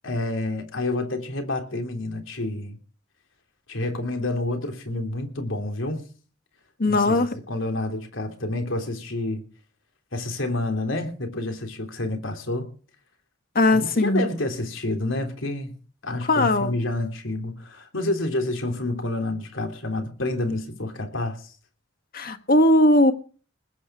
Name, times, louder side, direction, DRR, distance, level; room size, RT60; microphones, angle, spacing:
voice 1, 0.0-2.8 3.7-6.0 6.9-9.4 10.1-12.7 13.7-15.7 16.0-21.5, left 2 dB, 80° left, 3.4 m, -29 dB
voice 2, 6.8-7.3 13.5-14.3 16.2-16.7 22.1-23.1, left 1 dB, 50° left, 1.6 m, -19 dB
20.0 x 8.7 x 4.8 m
head